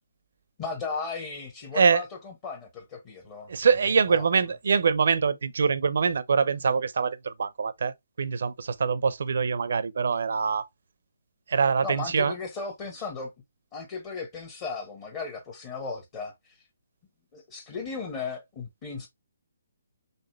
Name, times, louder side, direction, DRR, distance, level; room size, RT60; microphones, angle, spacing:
voice 1, 0.6-3.5 3.8-4.4 11.8-13.3 13.7-16.6 17.3-19.1, left 4 dB, 30° left, 1.3 m, -36 dB
voice 2, 3.5-7.9 8.2-10.7 11.5-12.3, right 5 dB, 65° right, 0.6 m, -24 dB
4.2 x 3.7 x 3.1 m
figure-of-eight pair, 150°, 0 cm